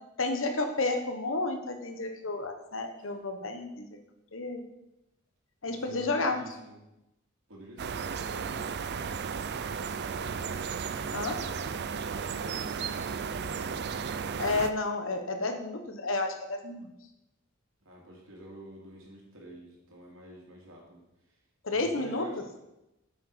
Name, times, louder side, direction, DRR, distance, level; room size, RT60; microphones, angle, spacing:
voice 1, 0.2-4.0 4.3-4.6 5.6-6.4 11.1-11.4 14.4-16.9 21.6-22.3, left 2 dB, 70° left, 6 dB, 1.2 m, -31 dB
voice 2, 5.6-6.8 7.5-8.9 12.0-13.6 17.8-21.0 21.7-22.6, right 1 dB, 75° right, -2 dB, 3.1 m, -48 dB
sound 1, 7.8-14.7, right 6 dB, 55° right, 0.5 m, -34 dB
8.6 x 7.9 x 5.0 m, 0.93 s
head